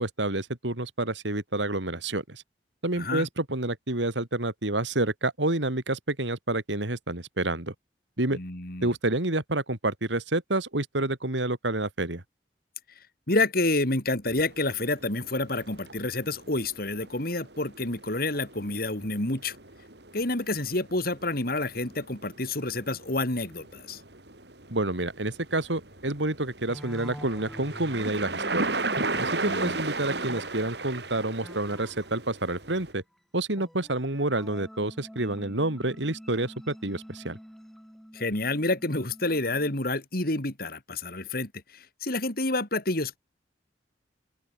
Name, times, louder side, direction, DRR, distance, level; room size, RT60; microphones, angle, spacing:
voice 1, 0.0-2.4 2.8-7.7 8.2-8.4 8.8-12.2 24.7-28.8 29.2-33.0 33.3-37.4, right 2 dB, 90° right, 3.4 m, -29 dB
voice 2, 2.9-3.3 8.3-8.9 13.3-19.6 20.1-24.0 29.5-29.8 38.1-43.2, left 2 dB, 55° left, 4.3 m, -29 dB
sound 1, 14.3-32.9, right 3 dB, 65° right, 7.5 m, -36 dB
sound 2, 26.7-32.8 33.6-39.8, equal, ahead, 4.2 m, -47 dB
open air
head